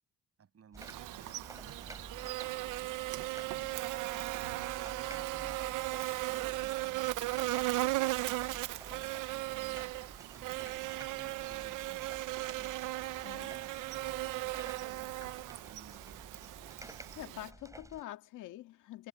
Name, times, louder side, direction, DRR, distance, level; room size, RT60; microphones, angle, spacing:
voice 1, 0.4-3.6 4.3-8.4 8.9-10.0 10.3-12.2 12.6-12.8 13.3-16.8, right 7 dB, 50° right, 7.8 m, -58 dB
sound 1, 0.7-18.0, right 1 dB, 10° right, 5.0 m, -52 dB
Buzz, 0.8-17.5, right 18 dB, 90° right, 0.8 m, -37 dB
voice 2, 3.5-3.8 13.2-13.5 17.2-19.1, left 14 dB, 85° left, 2.1 m, -46 dB
cardioid pair, 90°, 30 cm